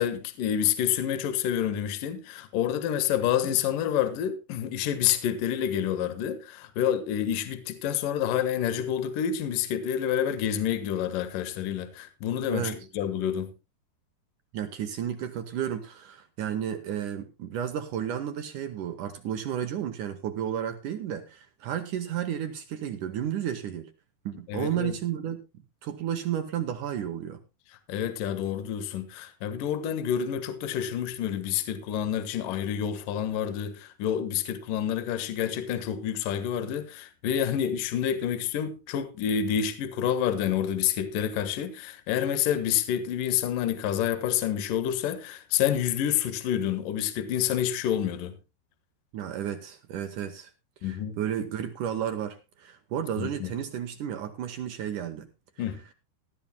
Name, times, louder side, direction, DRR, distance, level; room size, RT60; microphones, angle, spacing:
voice 1, 0.0-13.5 24.5-24.9 27.9-48.4 50.8-51.2 53.2-53.5 55.6-55.8, left 9 dB, 65° left, 2.7 m, -28 dB
voice 2, 14.5-23.9 24.3-25.4 25.8-27.4 49.1-50.5 50.8-55.3, right 9 dB, 75° right, 1.9 m, -32 dB
18.5 x 13.5 x 2.2 m
omnidirectional pair, 4.9 m